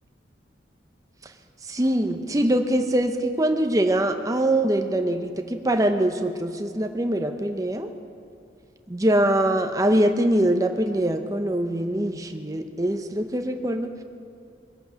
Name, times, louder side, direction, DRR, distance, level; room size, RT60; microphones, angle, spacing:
voice 1, 1.6-7.9 8.9-14.0, right 1 dB, 20° right, 5 dB, 0.7 m, -23 dB
21.5 x 8.6 x 6.3 m, 2.3 s
head